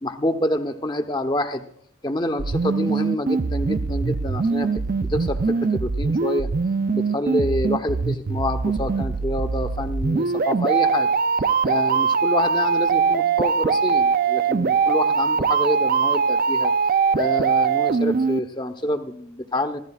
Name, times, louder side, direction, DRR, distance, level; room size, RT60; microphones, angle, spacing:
voice 1, 0.0-1.6 2.0-6.5 6.9-11.1 11.6-16.7 17.1-19.8, left 1 dB, 20° left, 8 dB, 0.9 m, -27 dB
sound 1, 2.4-18.4, right 5 dB, 45° right, 0.5 m, -22 dB
26.0 x 15.0 x 2.4 m, 0.65 s
head